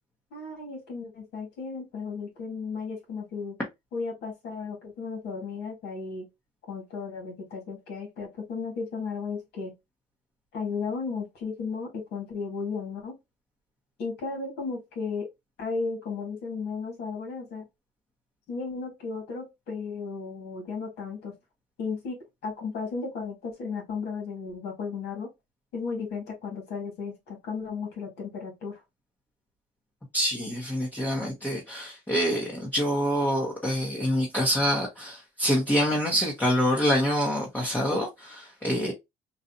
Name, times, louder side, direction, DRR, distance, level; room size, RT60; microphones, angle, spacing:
voice 1, 0.3-3.6 3.9-6.2 6.7-9.7 10.5-13.1 14.0-15.3 15.6-17.6 18.5-21.3 21.8-25.3 25.7-28.8, left 4 dB, 75° left, 1.9 m, -34 dB
voice 2, 30.1-38.9, equal, 10° left, 1.0 m, -26 dB
4.0 x 2.4 x 2.8 m
cardioid pair, 110°, 17 cm